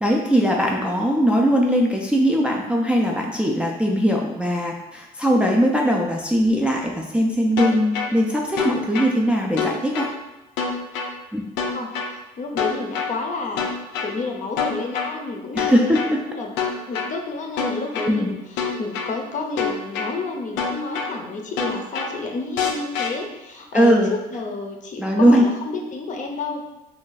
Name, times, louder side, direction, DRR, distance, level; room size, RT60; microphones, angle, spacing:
voice 1, 0.0-10.1 11.3-11.4 15.5-16.2 18.1-18.3 23.7-24.1 25.0-25.5, equal, 5° right, -1 dB, 0.3 m, -20 dB
sound 1, 7.6-8.1 8.6-9.1 9.6-10.1 10.6-11.1 11.6-12.1 12.6-13.1 13.6-14.1 14.6-15.1 15.6-16.1 16.6-17.1 17.6-18.1 18.6-19.1 19.6-20.1 20.6-21.1 21.6-22.1 22.6-23.1, left 6 dB, 85° left, 0.5 m, -25 dB
voice 2, 11.7-13.7 14.0-16.0 16.3-16.5 16.9-26.6, left 3 dB, 45° left, 2 dB, 0.6 m, -30 dB
2.6 x 2.3 x 3.8 m, 0.98 s
cardioid pair, 95°, 18 cm